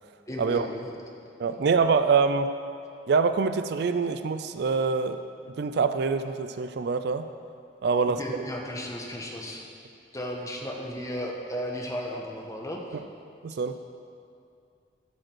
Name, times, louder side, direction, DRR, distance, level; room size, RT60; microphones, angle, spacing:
voice 1, 0.3-0.9 1.4-1.6 7.9-9.7 10.1-13.0, equal, 20° left, 0 dB, 1.1 m, -35 dB
voice 2, 1.4-2.5 3.1-5.2 5.6-7.2 7.8-8.2 13.4-13.7, right 5 dB, 60° right, 9 dB, 0.4 m, -25 dB
13.0 x 5.1 x 6.2 m, 2.4 s
head